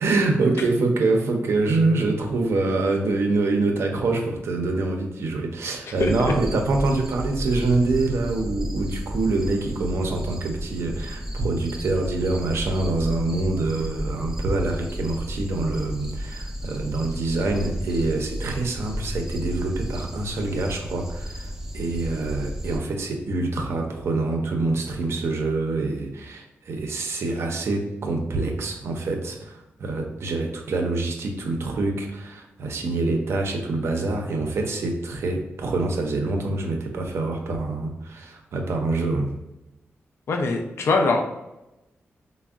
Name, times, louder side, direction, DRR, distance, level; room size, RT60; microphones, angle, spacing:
voice 1, 0.0-21.5 21.7-39.3, right 3 dB, 70° right, 2 dB, 0.5 m, -25 dB
sound 1, 6.0-22.8, equal, 10° right, 0.4 m, -33 dB
voice 2, 40.3-41.2, left 3 dB, 70° left, 3 dB, 0.4 m, -22 dB
3.4 x 2.0 x 2.3 m, 0.96 s
wide cardioid pair, 110°, 5 cm